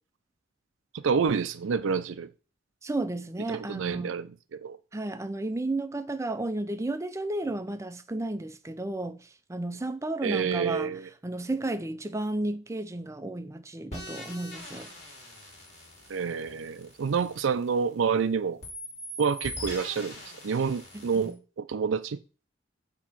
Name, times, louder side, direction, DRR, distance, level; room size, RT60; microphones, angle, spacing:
voice 1, 0.9-2.3 3.5-4.8 10.2-11.1 16.1-18.6 19.2-20.2 20.4-22.2, right 6 dB, 90° right, 0.4 m, -28 dB
voice 2, 2.8-4.1 4.9-14.9 20.9-21.4, right 2 dB, 15° right, 0.5 m, -33 dB
sound 1, 13.9-18.2 18.6-21.3, equal, 35° left, 2.6 m, -43 dB
8.1 x 3.0 x 6.0 m
head